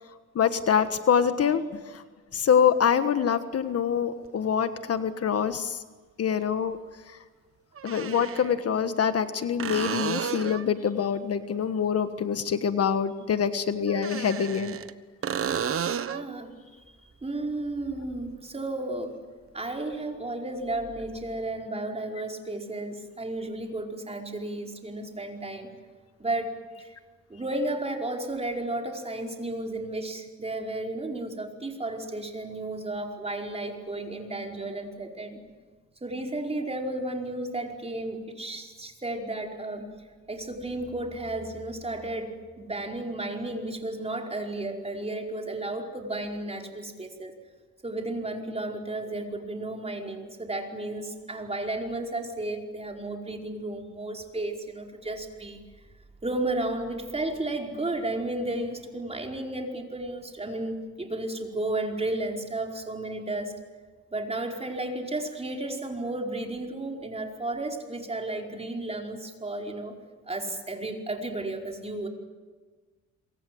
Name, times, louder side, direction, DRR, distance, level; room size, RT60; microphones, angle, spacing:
voice 1, 0.3-2.0 2.3-5.8 6.2-6.8 7.8-14.8, left 7 dB, 50° left, 10 dB, 1.5 m, -25 dB
sound 1, 4.3-4.4 6.4-6.5 7.8-8.5 9.6-10.7 13.9-14.9 15.2-16.3 19.9-20.0, right 8 dB, 45° right, 1.2 m, -32 dB
voice 2, 16.0-16.5 16.9-17.0 17.2-19.2 19.5-25.7 26.2-27.0 27.3-35.4 36.0-39.9 40.3-47.3 47.8-55.6 56.2-63.6 64.1-69.9 70.3-72.1, right 2 dB, 20° right, 1 dB, 5.0 m, -33 dB
27.0 x 24.5 x 7.9 m, 1.4 s
cardioid pair, 90°, 30 cm